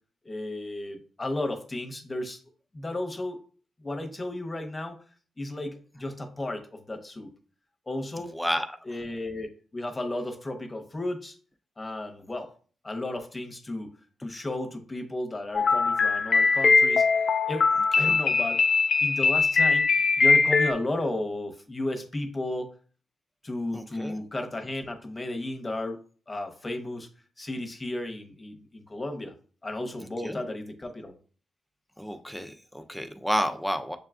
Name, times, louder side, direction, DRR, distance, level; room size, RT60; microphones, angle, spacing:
voice 1, 0.2-2.4 2.7-3.4 3.8-5.0 5.4-7.3 7.9-8.4 8.9-11.4 11.8-12.5 12.8-13.9 14.2-17.0 17.5-17.7 18.0-18.6 19.0-19.9 20.2-22.7 23.4-26.0 26.3-27.1 27.4-29.3 29.6-31.2, left 1 dB, 25° left, 5 dB, 0.9 m, -33 dB
voice 2, 8.3-8.7 18.0-18.1 23.7-24.2 30.2-30.4 32.0-34.0, equal, 5° left, 6 dB, 0.6 m, -30 dB
sound 1, 15.5-20.7, left 4 dB, 55° left, 0.3 m, -21 dB
6.5 x 2.3 x 2.4 m, 0.41 s
supercardioid pair, 50°, 0 cm